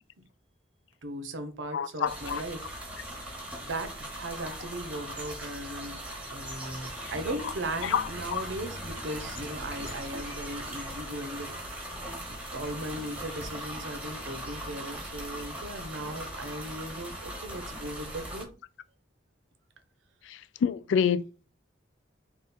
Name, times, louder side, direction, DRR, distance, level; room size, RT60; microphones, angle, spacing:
voice 1, 1.0-2.7 3.6-6.0 6.3-11.5 12.3-18.5, right 1 dB, 80° right, 0.7 m, -38 dB
voice 2, 1.7-2.4 7.9-8.0 8.3-8.4 20.6-21.4, left 7 dB, 80° left, 0.3 m, -27 dB
sound 1, 2.1-18.4, right 1 dB, 5° right, 0.9 m, -39 dB
3.6 x 2.4 x 4.1 m
head